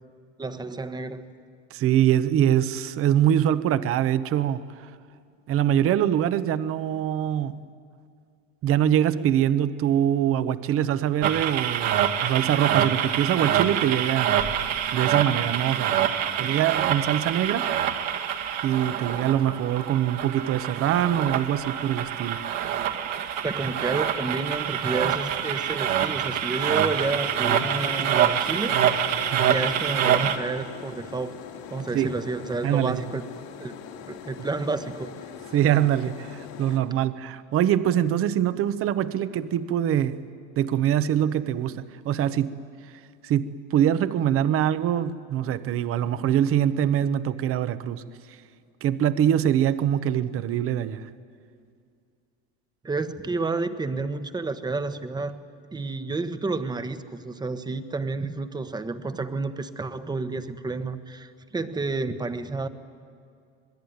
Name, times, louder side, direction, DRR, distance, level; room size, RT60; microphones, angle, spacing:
voice 1, 0.4-1.2 23.4-28.8 29.5-31.3 31.7-33.2 33.6-33.7 34.1-35.1 52.8-55.4 55.7-62.7, right 3 dB, 15° right, 1.1 m, -30 dB
voice 2, 1.7-4.9 5.5-7.6 8.6-14.4 14.9-15.9 16.4-17.7 18.6-22.4 29.3-29.5 31.9-32.2 32.6-33.0 35.5-40.2 40.6-42.6 43.2-48.0 48.8-51.1, right 10 dB, 45° right, 1.0 m, -24 dB
sound 1, 11.2-30.4, right 9 dB, 60° right, 2.0 m, -26 dB
sound 2, 26.5-36.8, left 7 dB, 80° left, 3.5 m, -42 dB
26.5 x 20.5 x 9.5 m
supercardioid pair, 130°, 32 cm